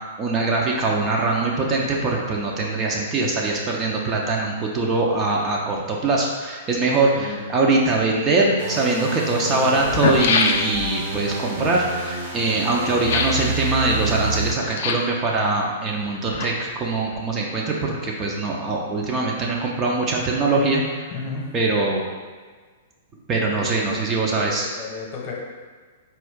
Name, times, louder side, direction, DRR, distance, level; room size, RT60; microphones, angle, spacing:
voice 1, 0.2-20.8 21.1-21.2 21.5-22.1 23.3-24.7, right 3 dB, 25° right, -2 dB, 0.5 m, -22 dB
sound 1, 8.6-14.5, right 2 dB, 55° right, 0.9 m, -29 dB
sound 2, 9.8-11.0 13.0-13.5 14.6-15.2 16.0-16.8 17.1-17.2, left 5 dB, 50° left, 0.3 m, -24 dB
voice 2, 21.1-21.4 23.6-23.8 24.3-25.3, left 4 dB, 35° left, -2 dB, 0.9 m, -34 dB
4.3 x 2.5 x 3.6 m, 1.5 s
figure-of-eight pair, 105°, 0 cm